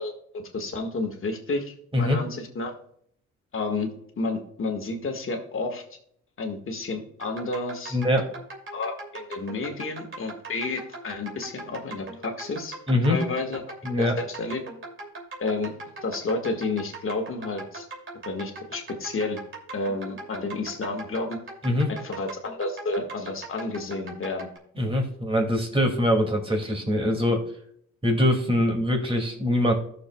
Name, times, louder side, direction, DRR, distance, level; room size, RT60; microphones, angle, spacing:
voice 1, 0.0-2.7 3.5-3.9 4.2-5.8 6.4-8.0 8.7-12.7 13.1-13.6 14.2-14.6 15.4-15.7 16.0-17.9 18.3-19.4 19.7-21.4 21.9-24.5, left 3 dB, 45° left, 4 dB, 1.8 m, -31 dB
sound 1, 7.2-24.6, right 2 dB, 40° right, 2.7 m, -40 dB
voice 2, 7.9-8.3 12.9-13.2 13.8-14.1 21.6-21.9 24.8-27.4 28.0-29.7, left 1 dB, 20° right, 2 dB, 2.4 m, -23 dB
15.5 x 6.7 x 2.3 m, 0.66 s
cardioid pair, 90°, 30 cm